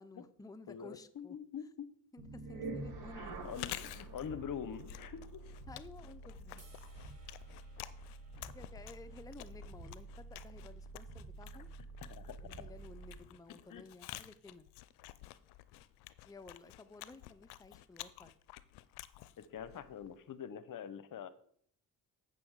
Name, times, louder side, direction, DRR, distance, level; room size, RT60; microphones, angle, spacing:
voice 1, 0.0-1.4 2.1-3.3 5.7-6.6 8.4-11.7 12.4-14.7 16.2-18.3, left 3 dB, 10° left, 12 dB, 0.6 m, -54 dB
voice 2, 0.7-1.9 3.1-5.4 12.1-12.3 13.7-13.8 19.5-21.3, left 8 dB, 60° left, 14 dB, 0.8 m, -44 dB
sound 1, 2.2-13.3, right 3 dB, 70° right, 2.3 m, -48 dB
Chewing mastication, 3.4-20.2, left 16 dB, 90° left, 0.5 m, -51 dB
sound 2, 6.6-12.8, right 3 dB, 45° right, 4.1 m, -69 dB
8.4 x 6.1 x 4.7 m, 0.63 s
supercardioid pair, 60°, 38 cm